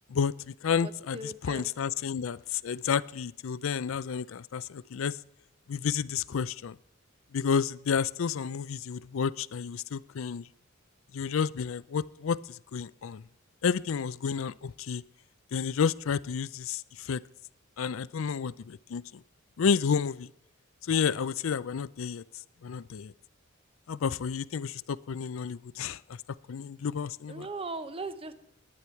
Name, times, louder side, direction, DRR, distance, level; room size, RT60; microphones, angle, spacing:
voice 1, 0.1-5.2 5.7-6.8 7.3-10.5 11.1-13.2 13.6-15.0 15.5-17.2 17.8-19.2 19.6-20.3 20.9-22.2 22.6-23.1 23.9-26.0 26.5-27.5, left 6 dB, 75° left, 19 dB, 0.4 m, -31 dB
voice 2, 0.8-1.7 27.3-28.3, right 2 dB, 25° right, 11 dB, 0.7 m, -39 dB
19.0 x 10.0 x 4.5 m, 0.75 s
head